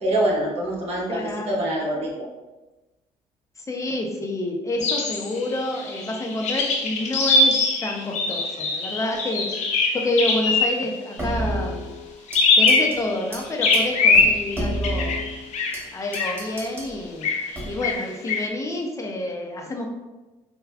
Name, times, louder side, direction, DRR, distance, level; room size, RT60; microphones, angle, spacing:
voice 1, 0.0-2.3, right 1 dB, 45° right, -4 dB, 1.2 m, -25 dB
voice 2, 1.1-1.7 3.7-9.5 9.9-11.9 12.6-15.3 15.9-17.3 17.7-19.9, left 1 dB, 20° left, 1 dB, 0.7 m, -28 dB
sound 1, 4.8-11.0 12.3-13.2 13.6-15.8 16.1-16.4 17.2-17.5 17.8-18.5, left 3 dB, 60° left, 0.6 m, -22 dB
sound 2, 11.2-12.4 12.7-13.0 13.3-13.4 13.7-13.8 14.1-15.8 16.1-16.9 17.5-18.0, right 1 dB, 15° right, 1.3 m, -30 dB
4.8 x 2.2 x 2.3 m, 1.1 s
supercardioid pair, 80°, 14 cm